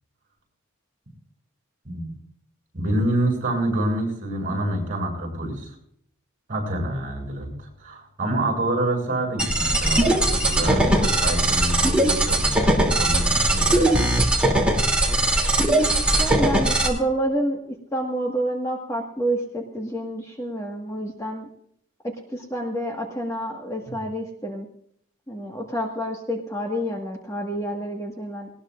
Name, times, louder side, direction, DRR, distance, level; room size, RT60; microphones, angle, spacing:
voice 1, 2.7-5.7 6.5-14.0 23.9-24.0, right 1 dB, 40° right, 1 dB, 7.6 m, -27 dB
sound 1, 9.4-16.9, right 1 dB, 5° right, 2.9 m, -20 dB
voice 2, 16.2-17.6 17.9-21.5 22.3-24.7 25.3-28.5, right 1 dB, 15° left, 0 dB, 1.7 m, -28 dB
20.0 x 19.5 x 2.6 m, 0.68 s
head